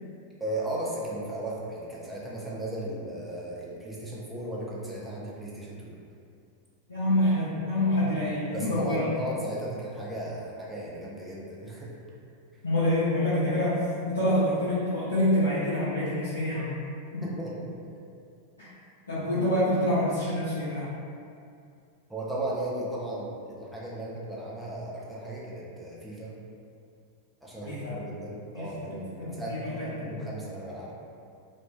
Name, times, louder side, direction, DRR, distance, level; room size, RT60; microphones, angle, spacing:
voice 1, 0.4-6.0 8.5-12.0 17.2-17.6 22.1-26.3 27.4-30.9, right 1 dB, 5° right, -7 dB, 0.5 m, -36 dB
voice 2, 6.9-9.0 12.6-13.8 14.1-16.8 17.1-17.2 18.6-18.7 19.1-20.9 27.7-28.0 28.5-30.1, left 1 dB, 75° left, -13 dB, 0.6 m, -27 dB
2.4 x 2.1 x 2.3 m, 2.4 s
figure-of-eight pair, 90°, 0 cm